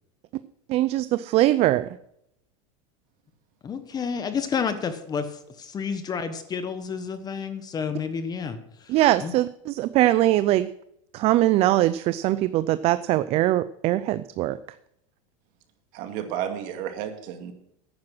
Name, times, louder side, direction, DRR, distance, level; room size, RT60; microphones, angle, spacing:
voice 1, 0.7-2.0 8.9-10.7 11.1-14.6, right 15 dB, 40° right, 15 dB, 0.4 m, -22 dB
voice 2, 3.6-5.3 5.6-8.6 8.8-8.9 9.2-9.3, left 6 dB, 25° left, 10 dB, 1.2 m, -30 dB
voice 3, 15.9-17.5, right 9 dB, 55° right, 6 dB, 2.1 m, -32 dB
10.5 x 9.6 x 6.1 m, 0.78 s
supercardioid pair, 135°, 17 cm